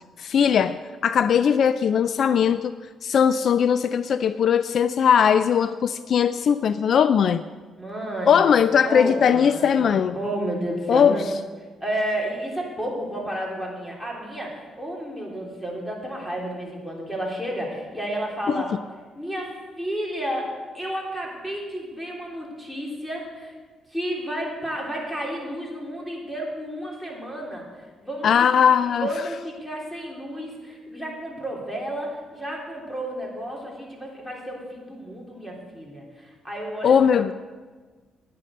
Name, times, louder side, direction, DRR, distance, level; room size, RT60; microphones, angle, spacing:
voice 1, 0.2-2.7 3.0-7.4 8.3-10.2 10.9-11.2 18.5-18.6 28.2-29.1 36.8-37.3, left 7 dB, 60° left, 13 dB, 0.3 m, -19 dB
voice 2, 7.8-8.5 8.8-11.2 11.8-18.7 19.2-23.5 23.9-27.6 28.0-28.3 29.0-36.9, right 1 dB, 5° left, -2 dB, 3.5 m, -31 dB
10.0 x 9.9 x 6.4 m, 1.4 s
cardioid pair, 90°, 0 cm